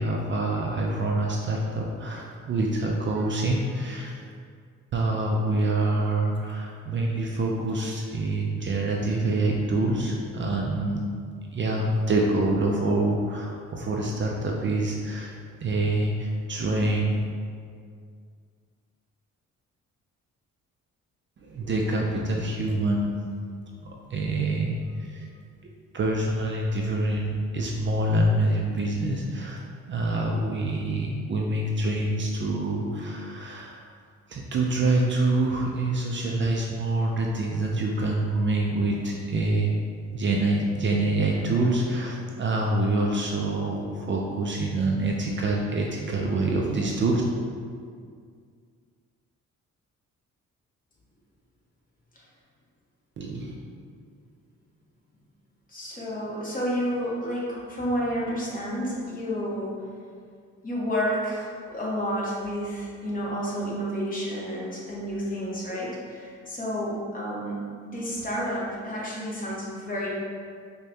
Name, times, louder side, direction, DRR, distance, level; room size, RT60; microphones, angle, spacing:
voice 1, 0.0-4.1 4.9-11.1 11.5-15.3 15.6-17.2 21.4-23.2 23.8-25.3 25.6-33.9 34.3-39.7 40.1-47.2 53.2-53.5, right 2 dB, 40° right, -1 dB, 0.4 m, -26 dB
voice 2, 55.7-59.7 60.6-70.1, equal, 30° left, -6 dB, 1.1 m, -30 dB
4.9 x 2.2 x 2.7 m, 2.1 s
cardioid pair, 90°, 30 cm